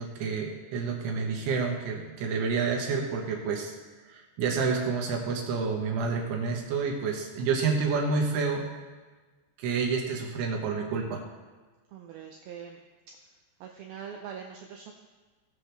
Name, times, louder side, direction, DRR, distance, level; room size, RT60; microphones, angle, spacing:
voice 1, 0.0-3.7 4.1-8.7 9.6-11.2, right 5 dB, 70° right, 1 dB, 3.0 m, -29 dB
voice 2, 11.9-12.8 13.3-14.9, right 7 dB, 85° right, 1 dB, 2.1 m, -43 dB
19.5 x 7.4 x 3.4 m, 1.3 s
omnidirectional pair, 5.4 m